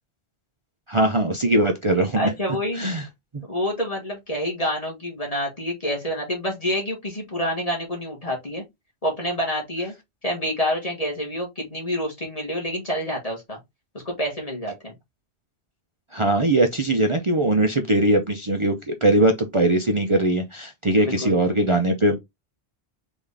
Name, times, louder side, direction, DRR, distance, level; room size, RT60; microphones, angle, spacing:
voice 1, 0.9-2.3 2.8-3.0 16.1-22.2, right 1 dB, 35° right, 0.6 m, -20 dB
voice 2, 2.1-2.9 3.5-8.6 9.0-9.9 10.2-13.6 14.0-14.9 21.0-21.3, equal, 35° left, 1.7 m, -27 dB
4.0 x 3.6 x 3.4 m
omnidirectional pair, 1.1 m